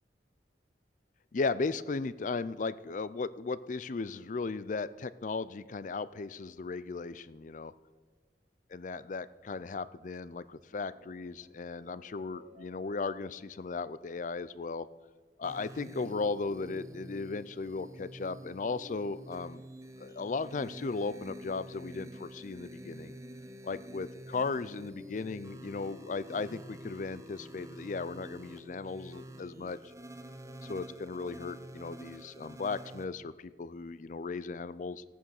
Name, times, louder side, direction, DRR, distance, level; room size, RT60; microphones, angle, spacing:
voice 1, 1.3-7.7 8.7-14.9 15.4-19.6 20.0-23.1 23.6-29.8 30.6-35.0, left 4 dB, 45° left, 16 dB, 0.4 m, -36 dB
sound 1, 10.4-15.0, right 1 dB, 70° right, 2.5 m, -62 dB
sound 2, 15.4-33.0, right 1 dB, 20° right, 0.9 m, -48 dB
15.5 x 9.2 x 6.5 m, 1.4 s
head